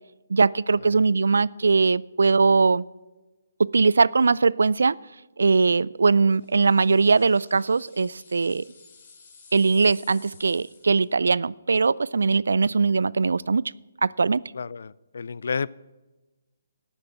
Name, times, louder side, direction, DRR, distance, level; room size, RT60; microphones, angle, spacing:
voice 1, 0.3-2.8 3.6-5.0 5.4-8.6 9.5-13.7 14.0-14.4, right 4 dB, 70° right, 23 dB, 0.3 m, -21 dB
sound 1, 6.3-11.1, left 5 dB, 45° left, 3.3 m, -53 dB
voice 2, 14.5-15.7, left 5 dB, 65° left, 23 dB, 0.4 m, -30 dB
12.5 x 8.7 x 7.3 m, 1.2 s
figure-of-eight pair, 140°, 0 cm